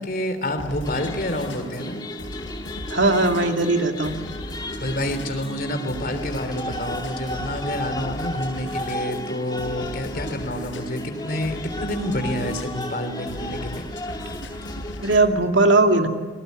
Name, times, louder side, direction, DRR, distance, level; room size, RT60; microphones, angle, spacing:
voice 1, 0.0-2.0 4.8-13.8, left 1 dB, 50° left, 7 dB, 3.3 m, -28 dB
sound 1, 0.6-15.3, left 1 dB, 75° left, 6.0 m, -38 dB
sound 2, 0.8-15.2, left 1 dB, 20° left, 1.6 m, -34 dB
voice 2, 2.9-4.2 15.0-16.1, right 2 dB, 90° right, 4 dB, 2.6 m, -19 dB
27.5 x 19.0 x 9.5 m, 1.4 s
head